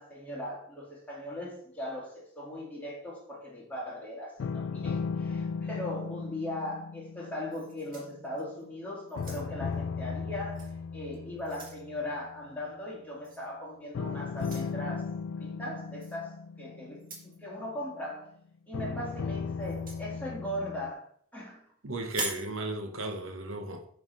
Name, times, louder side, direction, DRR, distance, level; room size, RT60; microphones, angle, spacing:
voice 1, 0.0-15.1 15.4-18.3 18.7-21.0 21.3-21.6, left 1 dB, 10° left, 2.1 m, -39 dB
sound 1, 4.4-8.8 9.2-12.4 13.9-17.9 18.7-20.9, left 5 dB, 65° left, 0.3 m, -37 dB
sound 2, 7.5-8.6 9.1-9.7 10.5-10.7 11.1-11.8 13.2-13.5 14.4-14.7 16.0-16.2 17.0-17.4 19.6-20.0 22.0-22.5, right 3 dB, 40° right, 1.7 m, -41 dB
voice 2, 21.8-23.9, right 2 dB, 70° right, 0.8 m, -35 dB
7.4 x 3.4 x 5.3 m
head